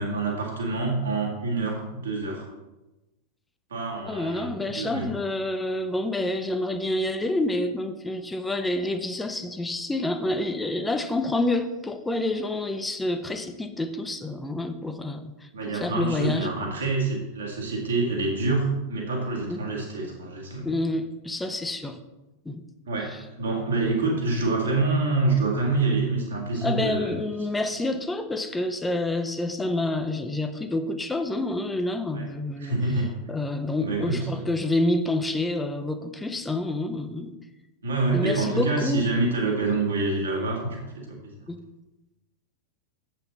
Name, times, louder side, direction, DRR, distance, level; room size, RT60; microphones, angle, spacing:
voice 1, 0.0-2.5 3.7-5.1 15.5-20.7 22.9-27.1 32.1-32.3 32.6-33.2 33.8-34.4 37.8-40.9 41.2-41.4, right 3 dB, 70° right, -1 dB, 2.2 m, -26 dB
voice 2, 4.1-15.5 15.7-16.5 19.5-19.6 20.6-22.0 22.4-22.6 26.6-32.7 33.3-37.3 38.1-39.1 41.5-41.6, left 2 dB, 10° left, 8 dB, 0.7 m, -28 dB
7.9 x 7.2 x 4.2 m, 1.0 s
figure-of-eight pair, 90°, 0 cm